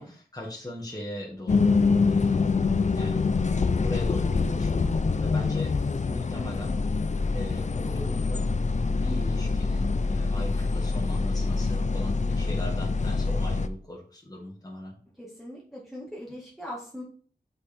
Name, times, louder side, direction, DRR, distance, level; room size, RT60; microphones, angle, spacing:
voice 1, 0.0-1.7 2.0-3.3 3.8-5.7 6.0-6.8 7.3-8.5 8.9-15.0, left 1 dB, 20° left, -2 dB, 1.9 m, -39 dB
sound 1, 1.5-13.7, left 4 dB, 45° left, 0.5 m, -25 dB
voice 2, 15.2-17.0, equal, ahead, -5 dB, 1.9 m, -40 dB
6.4 x 5.3 x 4.5 m, 0.42 s
wide cardioid pair, 75°, 17 cm